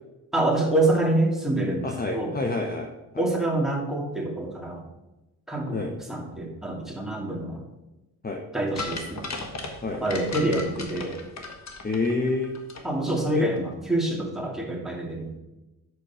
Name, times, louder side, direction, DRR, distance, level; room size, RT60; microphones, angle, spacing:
voice 1, 0.3-2.3 3.2-4.9 5.5-7.7 8.5-9.3 10.0-11.2 12.8-15.4, right 2 dB, ahead, -2 dB, 2.3 m, -26 dB
voice 2, 1.8-3.3 5.7-5.9 8.2-8.4 9.8-10.0 11.8-12.6 13.4-13.5, left 3 dB, 25° left, 2 dB, 0.9 m, -28 dB
sound 1, 8.8-12.8 13.1-13.2, left 3 dB, 45° left, 1.4 m, -36 dB
6.2 x 5.2 x 5.6 m, 1.0 s
supercardioid pair, 55°, 39 cm